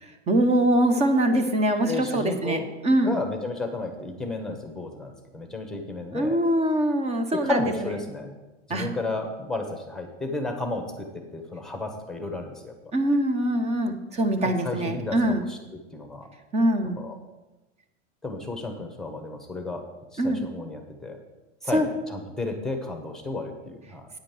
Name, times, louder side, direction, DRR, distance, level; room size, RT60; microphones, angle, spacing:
voice 1, 0.3-3.2 6.1-7.9 8.7-8.9 12.9-15.4 16.5-17.1 20.2-20.4 21.7-21.9, right 1 dB, 15° right, 8 dB, 0.8 m, -23 dB
voice 2, 1.9-2.7 3.0-6.4 7.4-8.3 8.7-11.1 11.3-12.7 14.4-15.2 15.5-15.6 15.9-16.3 17.0-17.2 18.2-19.8 20.1-21.2 21.6-24.1, left 2 dB, ahead, 5 dB, 1.1 m, -32 dB
9.2 x 5.1 x 7.7 m, 1.1 s
hypercardioid pair, 135°, 37 cm